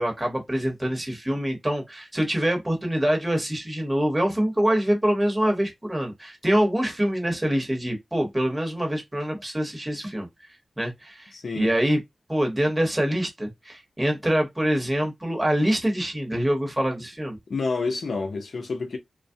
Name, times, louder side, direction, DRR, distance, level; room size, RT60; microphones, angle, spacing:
voice 1, 0.0-12.0 12.3-17.4, equal, 15° right, 1.0 m, -25 dB
voice 2, 11.3-11.7 17.5-19.0, left 4 dB, 75° left, 0.6 m, -28 dB
2.3 x 2.0 x 2.6 m
cardioid pair, 65°, 0 cm